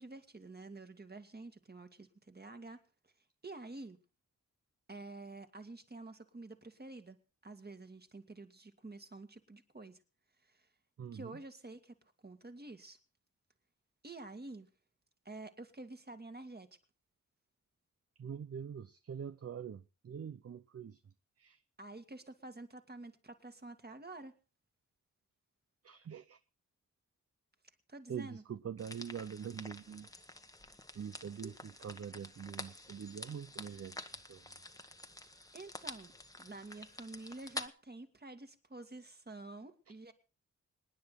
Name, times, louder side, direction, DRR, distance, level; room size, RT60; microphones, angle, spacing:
voice 1, 0.0-3.1 3.4-4.0 4.9-7.2 7.4-10.0 10.4-10.7 11.1-12.0 12.2-13.0 14.0-14.7 15.3-16.7 21.8-24.3 27.9-28.4 31.4-31.5 35.5-36.1 36.4-40.1, right 2 dB, 30° right, 2.0 m, -49 dB
voice 2, 11.0-11.4 18.2-21.6 25.8-26.4 28.1-30.1 30.9-34.0 34.3-34.6 39.9-40.0, right 8 dB, 50° right, 0.6 m, -44 dB
sound 1, 28.8-37.7, left 2 dB, 10° left, 1.2 m, -48 dB
26.0 x 9.8 x 3.9 m
cardioid pair, 65°, 32 cm